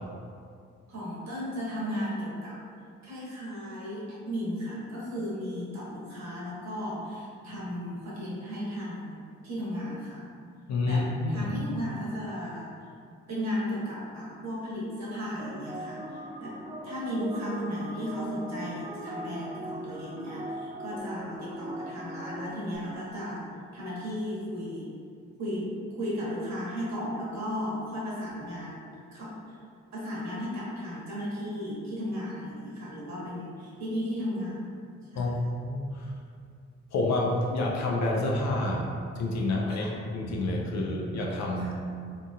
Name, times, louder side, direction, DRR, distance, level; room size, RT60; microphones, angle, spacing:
voice 1, 0.9-2.6 3.0-10.2 10.8-12.7 13.3-23.5 23.7-24.9 25.4-28.8 29.1-29.4 29.9-34.8 35.1-35.3 39.7-39.9 41.6-41.7, equal, 50° right, -7 dB, 1.1 m, -35 dB
voice 2, 10.7-11.5 35.1-36.1 36.9-38.9 39.2-41.7, left 2 dB, 50° left, -1 dB, 0.5 m, -28 dB
sound 1, 15.4-22.8, right 1 dB, 15° right, 0.3 m, -40 dB
2.8 x 2.5 x 2.2 m, 2.3 s
hypercardioid pair, 40°, 35 cm